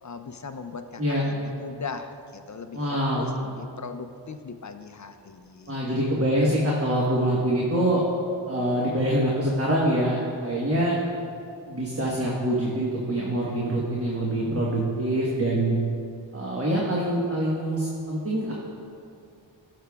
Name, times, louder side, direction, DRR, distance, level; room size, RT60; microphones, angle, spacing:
voice 1, 0.0-5.7, left 5 dB, 40° left, 8 dB, 0.4 m, -39 dB
voice 2, 2.7-3.3 5.7-8.0 8.5-11.0 11.7-15.7 16.3-18.5, right 1 dB, 30° right, -5 dB, 1.3 m, -25 dB
17.0 x 6.7 x 2.3 m, 2.5 s
wide cardioid pair, 115°, 45 cm